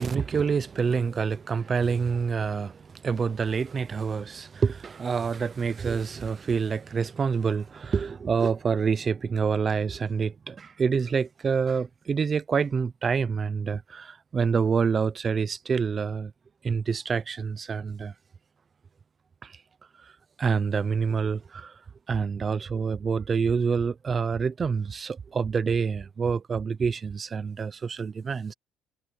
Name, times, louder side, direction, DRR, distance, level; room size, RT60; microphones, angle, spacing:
voice 1, 0.0-16.3 16.6-18.1 19.4-19.5 20.4-21.7 22.1-28.5, right 5 dB, 25° right, 0.6 m, -27 dB
cardioid pair, 150°, 0 cm